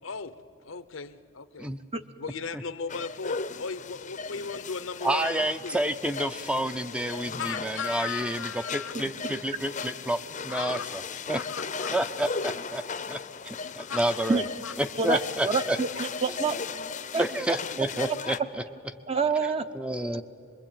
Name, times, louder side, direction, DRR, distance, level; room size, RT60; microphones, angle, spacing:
voice 1, 0.0-1.7 2.2-5.8 7.3-8.9 10.5-10.9 11.3-11.9 13.6-14.0 14.6-14.7, left 5 dB, 75° left, 13 dB, 0.8 m, -37 dB
sound 1, 2.9-18.4, left 5 dB, 40° left, 0.7 m, -37 dB
voice 2, 5.0-11.0 11.3-11.4 11.9-13.2 13.5-14.4 14.8-15.8 17.2-18.4 19.7-20.2, right 1 dB, 5° right, 10 dB, 0.6 m, -29 dB
voice 3, 15.0-16.5 17.1-17.6 19.1-19.6, right 4 dB, 30° right, 9 dB, 0.8 m, -27 dB
24.5 x 21.5 x 8.9 m, 2.6 s
head